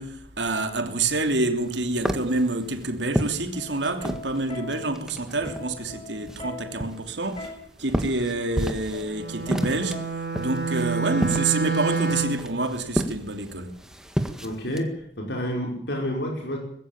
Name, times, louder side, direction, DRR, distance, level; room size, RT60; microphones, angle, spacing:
voice 1, 0.0-7.5 7.8-10.1 10.4-13.8, right 2 dB, 80° right, 3.0 m, -27 dB
sound 1, 1.6-4.4 4.7-5.8 6.3-9.1 9.4-14.8, equal, 5° right, 1.7 m, -30 dB
Plucked string instrument, 3.5-10.6 11.6-12.0, left 2 dB, 30° left, 7.2 m, -42 dB
Bowed string instrument, 9.1-12.5, right 5 dB, 60° right, 3.8 m, -28 dB
voice 2, 14.4-16.6, equal, 70° left, 5.1 m, -29 dB
20.5 x 16.0 x 8.8 m
head